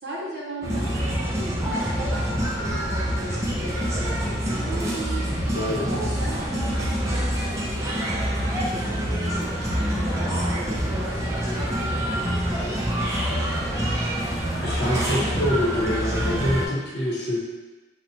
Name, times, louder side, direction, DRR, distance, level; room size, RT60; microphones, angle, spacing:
voice 1, 0.0-5.4 5.9-9.5 9.7-13.2, right 1 dB, 55° right, -5 dB, 0.6 m, -38 dB
sound 1, 0.6-16.7, equal, 15° right, 0.3 m, -26 dB
voice 2, 5.5-5.9 13.3-13.9 14.2-17.4, left 1 dB, 60° left, -4 dB, 0.8 m, -27 dB
3.9 x 2.1 x 2.8 m, 1.2 s
head